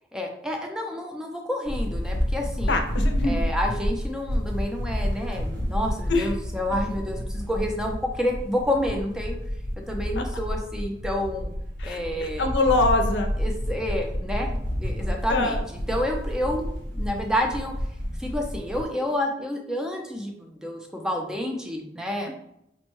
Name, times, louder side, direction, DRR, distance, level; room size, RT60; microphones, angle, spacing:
voice 1, 0.1-2.8 3.2-9.4 9.9-11.5 11.8-12.5 13.4-15.6 15.9-16.7 16.9-17.7 18.2-22.3, left 1 dB, 5° right, 1 dB, 0.5 m, -29 dB
sound 1, 1.6-18.8, equal, 75° right, 0.9 m, -29 dB
voice 2, 2.7-3.4 6.1-6.3 10.2-10.3 11.8-13.3 15.3-15.6, left 2 dB, 80° left, 5 dB, 0.6 m, -24 dB
5.2 x 2.2 x 3.1 m, 0.80 s
head